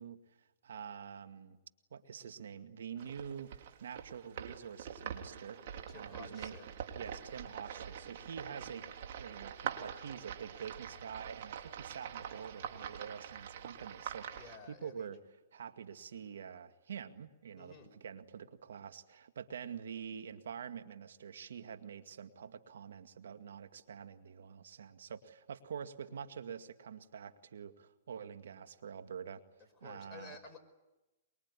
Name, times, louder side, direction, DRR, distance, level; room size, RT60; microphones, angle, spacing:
voice 1, 0.0-1.6 1.9-6.6 6.9-8.9 9.2-15.2 15.5-29.4 29.8-30.4, right 7 dB, 80° right, 9 dB, 1.9 m, -46 dB
sound 1, 3.0-14.6, right 9 dB, 60° right, 3.3 m, -45 dB
voice 2, 5.7-6.8 14.3-15.2 17.6-18.0 29.8-30.6, left 4 dB, 15° left, 0 dB, 5.3 m, -53 dB
24.0 x 23.0 x 9.8 m, 1.0 s
hypercardioid pair, 140°, 0 cm